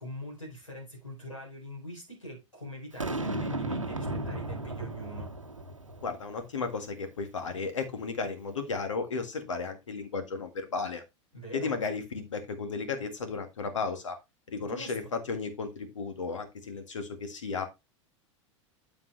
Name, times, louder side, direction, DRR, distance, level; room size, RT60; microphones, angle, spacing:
voice 1, 0.0-5.3 11.3-11.8 14.6-15.0, equal, 90° left, 4.1 m, -43 dB
Boom, 3.0-6.3, right 1 dB, 90° right, 1.0 m, -34 dB
voice 2, 6.0-11.0 11.5-14.2 14.5-17.7, left 4 dB, 70° left, 1.8 m, -34 dB
7.6 x 7.5 x 3.2 m
figure-of-eight pair, 85°, 16 cm